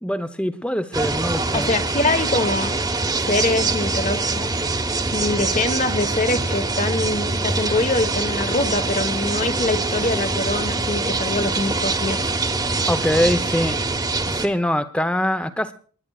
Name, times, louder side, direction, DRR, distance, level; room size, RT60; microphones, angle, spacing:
voice 1, 0.0-1.7 12.9-13.8 14.3-15.7, left 1 dB, 5° left, 11 dB, 0.8 m, -23 dB
sound 1, 0.9-14.5, right 3 dB, 20° right, 1.2 m, -24 dB
voice 2, 1.5-2.8 3.3-4.5 5.1-12.3, left 2 dB, 35° left, 9 dB, 1.3 m, -24 dB
28.5 x 10.5 x 2.4 m, 0.41 s
head